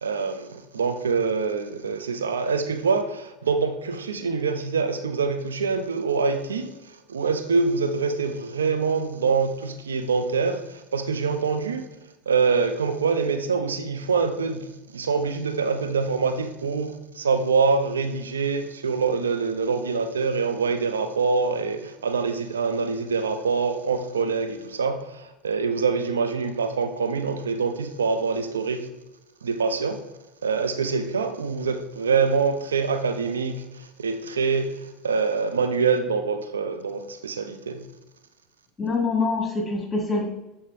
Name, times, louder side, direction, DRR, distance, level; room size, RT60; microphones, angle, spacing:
voice 1, 0.0-6.7 7.1-11.9 12.3-28.9 29.4-30.0 30.4-37.8, right 5 dB, 90° right, 8 dB, 0.5 m, -25 dB
voice 2, 38.8-40.3, left 3 dB, 20° left, 1 dB, 1.8 m, -25 dB
8.7 x 4.2 x 3.4 m, 1.0 s
hypercardioid pair, 80°, 0 cm